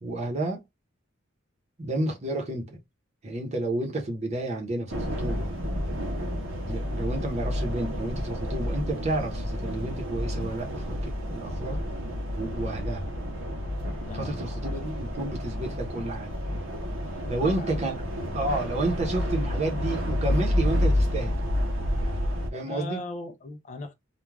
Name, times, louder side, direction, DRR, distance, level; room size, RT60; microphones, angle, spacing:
voice 1, 0.0-0.6 1.8-2.8 3.2-5.5 6.7-11.8 12.3-13.0 14.1-16.3 17.3-17.9 18.3-21.3 22.5-23.0, right 2 dB, 35° right, 0.7 m, -31 dB
sound 1, 4.9-22.5, left 1 dB, 65° right, 0.6 m, -30 dB
voice 2, 14.0-14.9 17.0-17.9 22.7-23.9, left 2 dB, 35° left, 0.4 m, -39 dB
2.3 x 2.2 x 3.1 m
head